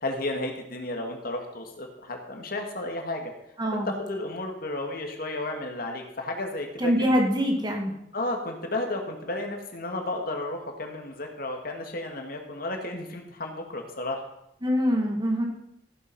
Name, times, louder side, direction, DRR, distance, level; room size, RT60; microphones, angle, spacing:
voice 1, 0.0-3.3 3.7-7.1 8.1-14.2, left 2 dB, 55° left, 3 dB, 2.2 m, -33 dB
voice 2, 3.6-3.9 6.8-7.9 14.6-15.5, equal, 25° right, 2 dB, 2.1 m, -24 dB
15.0 x 8.1 x 5.5 m, 0.78 s
head